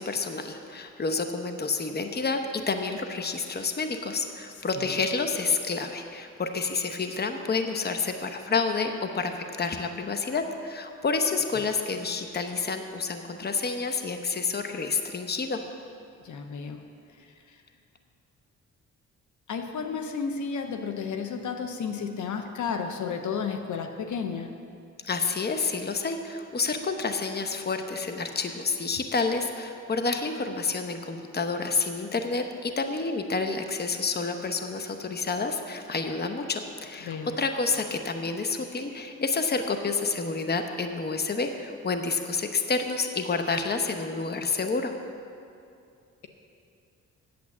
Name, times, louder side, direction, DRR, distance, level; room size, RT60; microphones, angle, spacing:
voice 1, 0.0-15.6 25.0-44.9, left 4 dB, 35° left, 6 dB, 0.9 m, -29 dB
voice 2, 16.2-16.8 19.5-24.5 37.0-37.4, left 6 dB, 75° left, 6 dB, 0.8 m, -32 dB
8.7 x 7.6 x 7.2 m, 2.5 s
cardioid pair, 80°, 30 cm